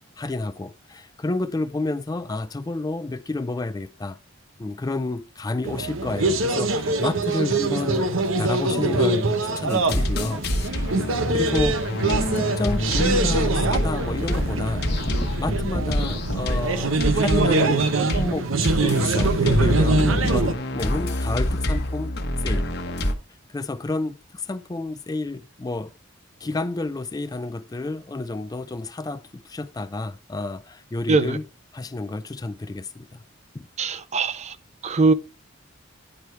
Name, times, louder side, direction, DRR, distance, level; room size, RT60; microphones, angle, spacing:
voice 1, 0.2-4.2 4.6-8.1 8.4-11.0 11.3-11.8 12.4-14.9 15.4-18.5 18.8-22.1 22.4-22.7 23.5-25.9 26.4-31.4 31.7-33.2 33.5-33.7, left 2 dB, 20° left, 0.3 m, -30 dB
sound 1, 5.7-20.5, right 3 dB, 85° right, 0.9 m, -24 dB
sound 2, 9.7-23.1, left 1 dB, 55° left, 1.1 m, -26 dB
voice 2, 33.8-34.6 34.8-35.1, right 3 dB, 35° right, 0.6 m, -21 dB
10.0 x 4.7 x 4.5 m
head